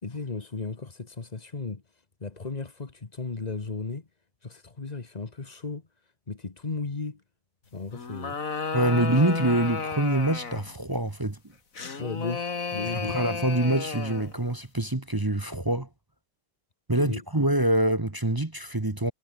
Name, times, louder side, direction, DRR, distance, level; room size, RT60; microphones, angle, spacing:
voice 1, 0.0-4.1 4.4-7.2 7.7-8.4 8.9-9.1 12.0-13.2 17.0-17.2, left 3 dB, 25° left, 1.3 m, -35 dB
sound 1, 7.9-10.7 11.8-14.4, left 4 dB, 40° left, 2.6 m, -33 dB
voice 2, 8.7-11.4 12.9-15.9 16.9-19.1, right 1 dB, 15° right, 0.8 m, -25 dB
omnidirectional pair, 2.2 m